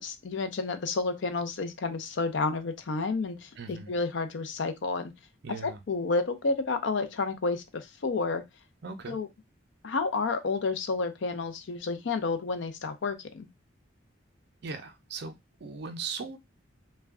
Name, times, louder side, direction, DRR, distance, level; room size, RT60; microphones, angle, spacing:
voice 1, 0.0-5.1 5.6-8.4 9.1-9.3 9.8-13.5, left 3 dB, 65° left, 0.5 m, -30 dB
voice 2, 3.6-4.0 5.4-5.8 8.8-9.2 14.6-15.4 15.6-16.4, right 5 dB, 55° right, 0.4 m, -38 dB
2.2 x 2.2 x 3.5 m
head